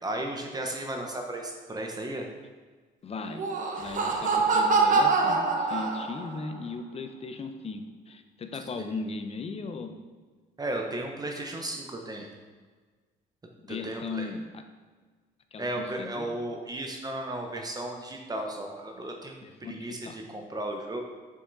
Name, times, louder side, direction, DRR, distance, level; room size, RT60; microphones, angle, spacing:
voice 1, 0.0-2.3 4.1-4.2 8.8-8.9 10.6-12.3 13.7-14.3 15.6-19.3 19.6-21.0, right 1 dB, 25° right, 2 dB, 1.0 m, -35 dB
voice 2, 3.0-3.5 3.8-9.9 13.6-14.6 15.5-16.4 19.4-20.2, left 4 dB, 35° left, 7 dB, 0.8 m, -37 dB
Laughter, 3.2-6.4, right 4 dB, 50° right, 1.1 m, -25 dB
6.6 x 5.6 x 4.1 m, 1.5 s
cardioid pair, 85°, 17 cm